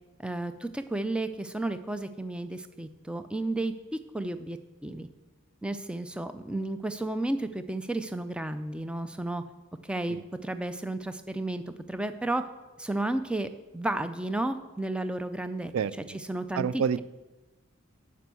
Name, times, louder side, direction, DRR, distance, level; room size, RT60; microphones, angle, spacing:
voice 1, 0.2-4.6 4.8-5.1 5.6-9.4 9.9-10.2 10.4-11.6 11.9-12.4 12.8-13.5 13.7-15.7 16.3-17.0, right 2 dB, 5° right, 10 dB, 0.4 m, -32 dB
voice 2, 15.7-16.2 16.5-17.0, right 7 dB, 85° right, 18 dB, 0.3 m, -29 dB
8.9 x 6.1 x 8.2 m, 1.2 s
head